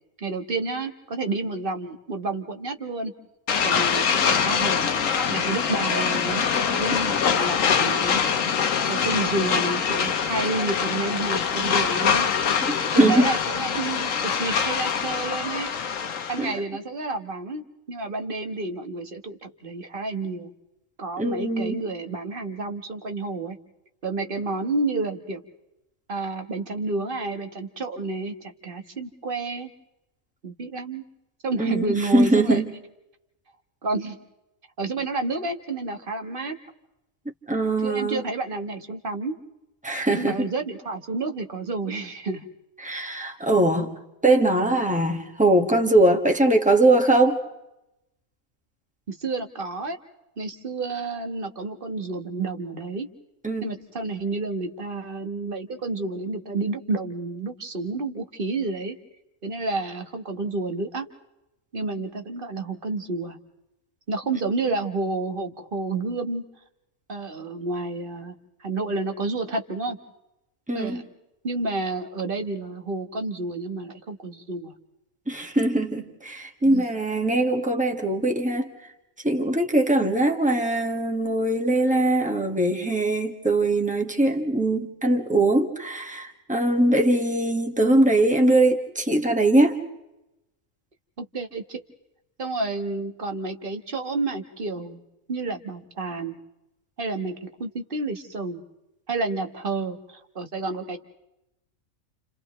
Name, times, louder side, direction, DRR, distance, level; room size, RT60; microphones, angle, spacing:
voice 1, 0.2-3.1 3.6-4.9 5.3-6.5 6.7-8.2 8.9-12.3 12.9-15.7 16.3-20.5 21.0-23.6 24.0-25.4 26.1-29.7 30.4-31.0 31.4-32.6 33.8-34.2 34.8-36.5 37.8-39.3 40.1-42.4 49.1-50.0 50.4-53.1 53.6-59.0 59.4-61.1 61.7-63.4 64.1-66.4 67.1-68.3 68.6-70.0 70.7-71.0 71.4-74.7 76.6-76.9 91.2-91.8 92.4-95.0 95.3-96.4 97.0-98.6 99.1-101.0, right 3 dB, 45° right, 6 dB, 1.5 m, -30 dB
sound 1, 3.5-16.5, left 6 dB, 90° left, 1.4 m, -24 dB
voice 2, 12.7-13.3 16.4-16.5 21.2-21.8 31.6-32.7 37.5-38.2 39.8-40.3 42.8-43.9 44.2-47.4 53.4-53.7 70.7-71.0 75.3-78.7 79.2-89.8, right 2 dB, 5° right, 2 dB, 1.7 m, -21 dB
29.5 x 29.5 x 3.2 m, 0.92 s
omnidirectional pair, 1.3 m